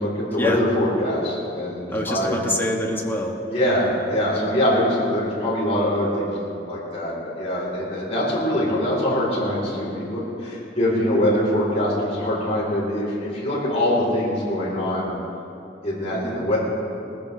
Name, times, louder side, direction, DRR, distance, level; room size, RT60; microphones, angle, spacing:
voice 1, 0.0-2.4 3.5-15.1 15.8-16.6, left 1 dB, 35° left, -7 dB, 4.0 m, -23 dB
voice 2, 1.9-3.4 16.1-16.5, left 1 dB, 10° left, 0 dB, 1.5 m, -26 dB
20.0 x 15.5 x 3.4 m, 2.7 s
head